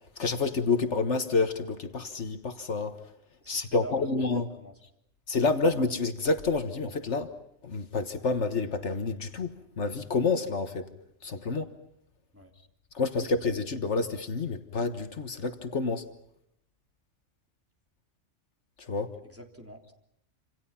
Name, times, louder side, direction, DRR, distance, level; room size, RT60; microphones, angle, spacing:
voice 1, 0.2-3.0 3.5-4.5 5.3-7.3 7.6-10.9 11.2-11.7 12.9-16.0 18.8-19.2, left 3 dB, 65° left, 1.7 m, -28 dB
voice 2, 3.4-4.7 12.3-12.5 13.3-13.4 19.2-19.9, right 1 dB, 10° right, 3.3 m, -46 dB
28.0 x 27.0 x 5.8 m
omnidirectional pair, 1.3 m